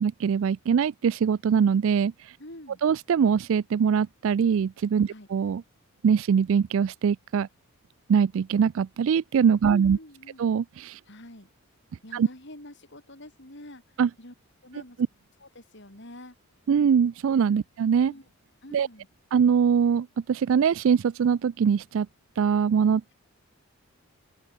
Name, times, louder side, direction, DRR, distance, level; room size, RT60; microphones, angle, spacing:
voice 1, 0.0-2.4 2.8-5.6 6.0-7.5 8.1-10.0 10.4-11.0 12.1-12.3 14.0-14.1 16.7-18.1 18.7-18.9 19.3-22.1 22.4-23.1, right 7 dB, 60° right, 0.3 m, -23 dB
voice 2, 2.4-2.8 5.1-5.3 9.7-10.4 11.1-11.5 12.0-13.8 14.2-14.3 14.6-15.0 15.4-16.4 17.5-17.6 18.1-18.3 18.6-19.1, left 1 dB, 50° left, 5.5 m, -46 dB
open air
head